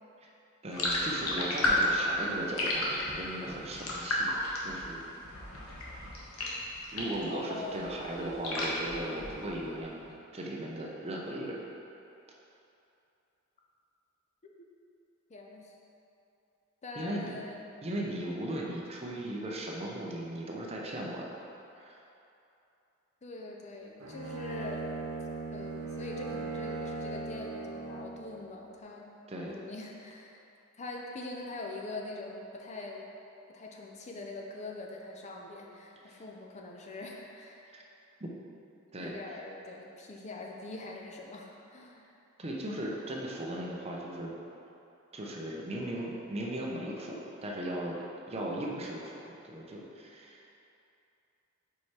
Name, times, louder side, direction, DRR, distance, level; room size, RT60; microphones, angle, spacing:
voice 1, 0.6-4.3 4.6-5.1 6.9-11.6 17.0-17.3 17.8-21.3 21.8-22.0 29.3-29.5 36.1-36.2 38.2-38.3 38.9-39.1 42.4-44.4 45.1-50.4, right 1 dB, 30° right, -2 dB, 0.6 m, -37 dB
sound 1, 0.7-7.3 7.6-9.7, left 1 dB, 80° left, 1.0 m, -33 dB
voice 2, 7.3-8.4 14.4-14.6 15.3-15.8 16.8-17.7 23.2-24.9 25.5-29.1 29.4-30.4 30.8-33.1 33.5-37.7 39.0-42.0, left 2 dB, 30° left, -1 dB, 0.5 m, -43 dB
Bowed string instrument, 24.0-28.2, right 3 dB, 80° right, 0.9 m, -38 dB
4.8 x 4.6 x 4.2 m, 2.8 s
head